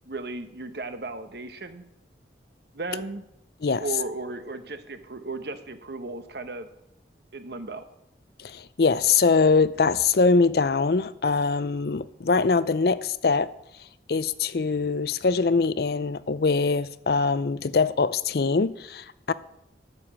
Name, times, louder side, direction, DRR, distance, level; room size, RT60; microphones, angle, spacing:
voice 1, 0.1-1.8 2.7-3.2 3.8-6.7 7.3-7.9, right 3 dB, 60° right, 1.0 m, -35 dB
voice 2, 8.4-13.5 14.1-19.3, left 4 dB, 60° left, 0.5 m, -23 dB
11.5 x 6.9 x 7.3 m
head